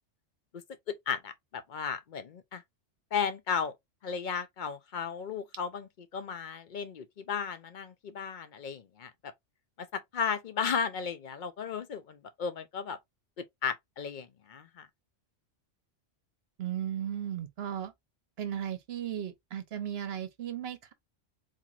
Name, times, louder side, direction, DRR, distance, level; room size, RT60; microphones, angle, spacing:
voice 1, 0.9-2.6 3.1-3.7 4.0-9.3 9.8-13.0 13.4-14.9, left 6 dB, 55° left, 0.6 m, -35 dB
voice 2, 16.6-17.9 18.4-20.9, right 10 dB, 60° right, 1.0 m, -36 dB
3.9 x 2.9 x 2.4 m
omnidirectional pair, 1.2 m